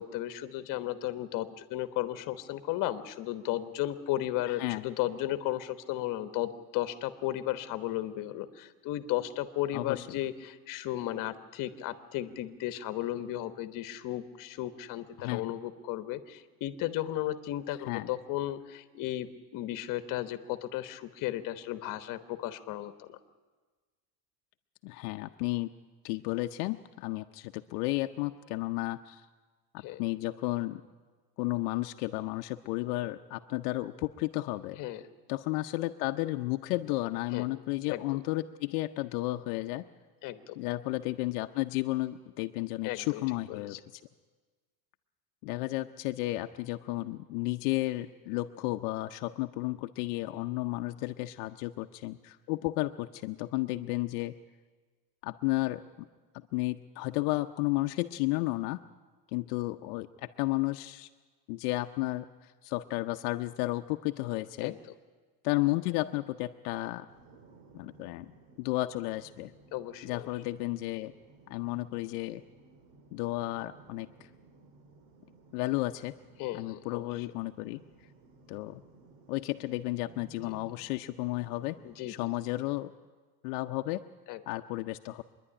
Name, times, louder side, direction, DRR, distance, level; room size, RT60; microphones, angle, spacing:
voice 1, 0.0-23.2 29.8-30.0 34.8-35.0 37.3-37.4 37.9-38.0 40.2-40.6 42.8-43.2 43.5-43.8 64.6-64.8 69.7-70.2 76.4-77.2 80.5-80.6 81.8-82.1 84.3-84.4, left 14 dB, 45° left, 10 dB, 1.2 m, -35 dB
voice 2, 4.5-4.9 9.7-10.1 15.2-15.5 17.9-18.1 24.8-25.7 26.0-29.2 30.0-30.8 31.4-34.8 35.3-39.8 40.6-43.8 45.4-54.3 55.2-56.1 56.5-58.8 59.3-61.1 61.5-64.7 65.4-67.1 67.7-68.3 68.6-69.5 70.0-71.1 71.5-72.4 73.1-74.1 75.5-76.1 76.5-77.8 78.5-78.8 79.3-81.8 82.1-82.9 83.4-84.0 84.5-85.2, left 19 dB, 75° left, 6 dB, 0.8 m, -33 dB
sound 1, 67.1-82.1, right 3 dB, 75° right, 2.2 m, -58 dB
24.5 x 11.0 x 10.0 m, 1.4 s
cardioid pair, 155°, 45 cm